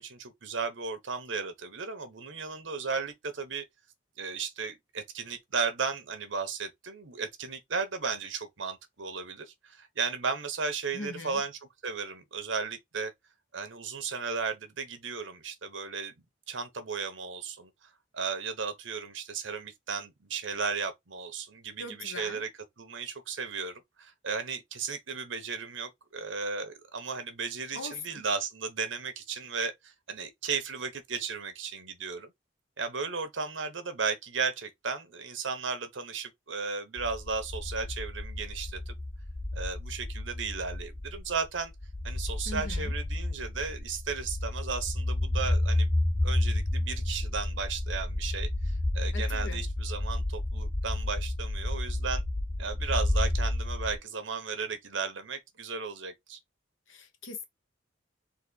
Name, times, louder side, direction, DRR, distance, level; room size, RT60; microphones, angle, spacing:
voice 1, 0.0-3.6 4.2-11.5 11.8-13.1 13.5-16.1 16.5-17.7 18.1-22.5 22.8-32.3 32.8-38.9 39.5-41.7 42.0-46.0 46.2-52.2 52.6-56.4, right 5 dB, 80° right, 1.1 m, -35 dB
voice 2, 10.9-11.4 21.8-22.4 27.7-28.2 42.4-43.0 49.1-49.6 56.9-57.5, left 3 dB, 85° left, 1.2 m, -41 dB
sound 1, 37.0-54.0, left 1 dB, 15° left, 0.5 m, -31 dB
4.1 x 2.7 x 4.0 m
head